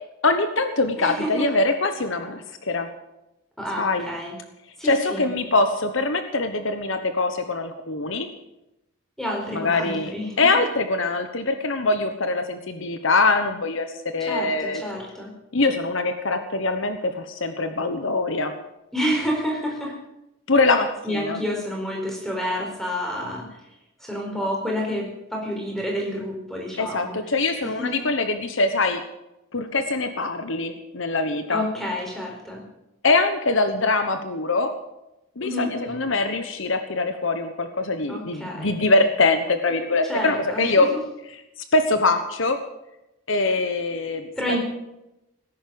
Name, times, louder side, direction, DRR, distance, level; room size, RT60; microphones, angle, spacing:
voice 1, 0.2-2.9 3.8-4.1 4.8-8.3 9.5-13.9 14.1-14.8 15.5-18.5 20.5-21.4 26.8-29.0 29.5-31.6 33.0-34.7 35.4-40.9 41.7-42.6 43.3-44.6, left 3 dB, 60° left, 8 dB, 1.2 m, -23 dB
voice 2, 1.0-1.5 3.6-4.3 4.8-5.3 9.2-10.6 14.2-15.3 18.9-20.0 21.0-23.5 24.0-27.1 27.6-28.1 31.5-32.6 35.4-35.9 38.1-38.7 40.1-40.9 44.4-44.6, equal, ahead, -1 dB, 4.5 m, -29 dB
18.5 x 10.5 x 7.1 m, 0.92 s
head